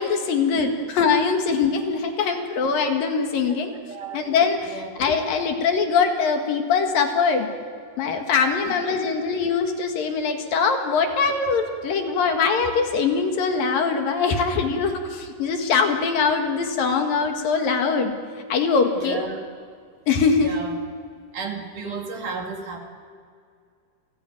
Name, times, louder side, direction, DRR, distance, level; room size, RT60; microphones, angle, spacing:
voice 1, 0.0-3.7 4.1-7.5 8.0-18.1 18.5-19.2 20.1-20.5, left 5 dB, 65° left, 4 dB, 3.3 m, -22 dB
voice 2, 0.5-0.9 3.4-4.3 4.6-4.9 8.7-9.0 19.0-19.4 20.4-20.8 21.3-22.8, right 4 dB, 55° right, 2 dB, 3.7 m, -34 dB
29.0 x 18.0 x 9.1 m, 2.2 s
omnidirectional pair, 4.6 m